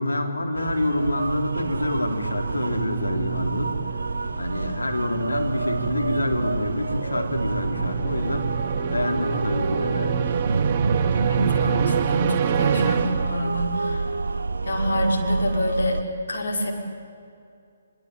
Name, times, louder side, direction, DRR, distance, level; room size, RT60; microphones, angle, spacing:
voice 1, 0.0-3.8 4.4-8.5 8.9-10.3, left 1 dB, 80° left, 3 dB, 3.6 m, -27 dB
sound 1, 0.5-16.0, right 3 dB, 70° right, 0.9 m, -28 dB
sound 2, 1.2-13.8, right 9 dB, 35° right, 1.1 m, -29 dB
voice 2, 11.0-14.1 14.6-16.0 16.3-16.7, equal, 65° left, 1 dB, 5.4 m, -26 dB
24.0 x 23.0 x 9.1 m, 2.4 s
figure-of-eight pair, 140°, 0 cm